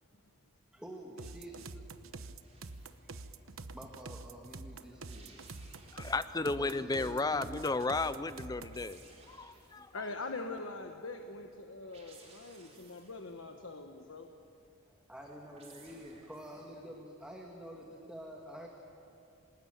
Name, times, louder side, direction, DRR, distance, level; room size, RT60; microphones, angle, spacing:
voice 1, 0.7-1.6 2.1-2.3 3.0-5.9 6.4-7.7 14.9-18.7, equal, 5° right, 0 dB, 1.9 m, -49 dB
sound 1, 1.2-8.9, right 3 dB, 80° right, 1.0 m, -47 dB
sound 2, 2.4-3.1 4.9-6.5 8.3-10.0 11.8-13.4 15.2-16.8, right 4 dB, 30° right, 4.7 m, -60 dB
voice 2, 5.9-9.0 9.3-9.9, left 3 dB, 20° left, 13 dB, 0.5 m, -34 dB
voice 3, 9.9-14.3, left 3 dB, 75° left, 4 dB, 1.3 m, -43 dB
27.5 x 19.5 x 9.2 m, 2.7 s
head